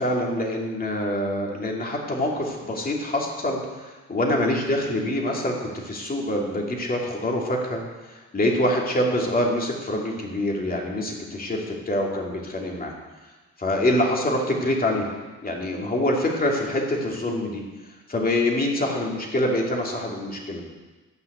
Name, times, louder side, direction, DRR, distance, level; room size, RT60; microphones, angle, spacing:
voice 1, 0.0-7.8 8.1-12.9 13.6-15.1 15.4-17.6 18.1-20.6, left 1 dB, 25° left, -1 dB, 2.6 m, -25 dB
13.5 x 5.8 x 8.0 m, 1.2 s
cardioid pair, 105°, 32 cm